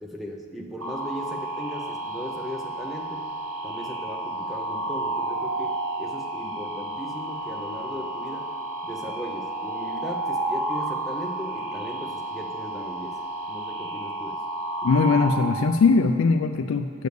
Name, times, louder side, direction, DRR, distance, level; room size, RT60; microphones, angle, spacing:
voice 1, 0.0-3.3 3.6-8.5 8.8-13.2 13.5-14.4, equal, ahead, 0 dB, 0.5 m, -38 dB
sound 1, 0.8-15.4, right 2 dB, 80° right, 2.1 m, -31 dB
voice 2, 14.8-17.1, left 4 dB, 60° left, 7 dB, 0.4 m, -21 dB
8.0 x 6.8 x 6.5 m, 2.5 s
head